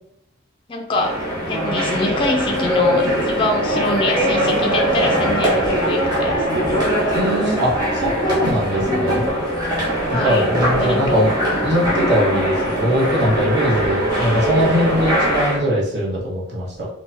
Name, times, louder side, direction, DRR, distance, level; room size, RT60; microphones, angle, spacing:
voice 1, 0.7-1.2 1.5-6.5 10.0-10.5 10.8-11.3 12.3-12.4, left 2 dB, 25° left, 1 dB, 0.4 m, -24 dB
sound 1, 0.9-15.6, equal, 20° right, 1.2 m, -21 dB
voice 2, 7.1-9.3 10.1-11.3 11.6-16.9, equal, 65° right, -6 dB, 1.2 m, -21 dB
4.7 x 2.2 x 2.6 m, 0.82 s
head